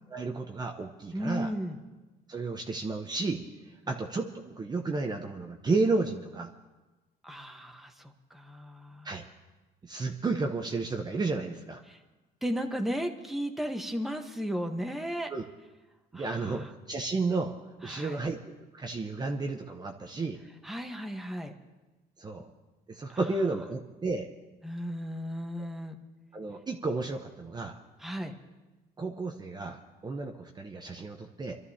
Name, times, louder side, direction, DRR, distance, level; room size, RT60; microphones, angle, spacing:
voice 1, 0.1-1.5 2.3-3.4 3.9-6.5 9.0-9.2 9.8-11.8 15.3-15.4 16.1-17.5 17.8-20.4 22.2-22.5 22.9-24.3 26.3-27.8 29.0-31.5, right 3 dB, 25° right, 2 dB, 0.9 m, -32 dB
voice 2, 1.1-1.8 7.2-9.1 11.9-12.0 12.4-15.3 16.1-16.7 17.8-18.3 20.6-21.5 23.1-23.2 24.6-26.0 28.0-28.3, equal, ahead, 4 dB, 1.2 m, -35 dB
28.0 x 12.5 x 2.8 m, 1.2 s
cardioid pair, 110°, 17 cm